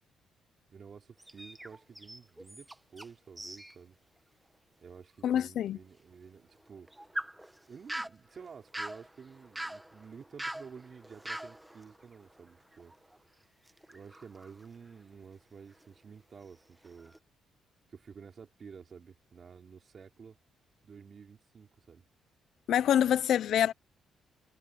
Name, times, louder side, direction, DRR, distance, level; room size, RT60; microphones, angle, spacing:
voice 1, 0.7-4.0 4.8-6.9 7.7-12.9 13.9-17.2 17.9-20.4 20.8-22.0, right 6 dB, 45° right, 5.0 m, -51 dB
sound 1, 1.2-3.1 3.4-3.8 4.2-4.3 4.9-5.0 6.5-13.2 13.6-15.2 15.7-16.0 16.4-17.2, right 1 dB, 5° right, 1.1 m, -44 dB
voice 2, 5.2-5.8 22.7-23.7, left 10 dB, 70° left, 0.6 m, -26 dB
cardioid pair, 90°, 0 cm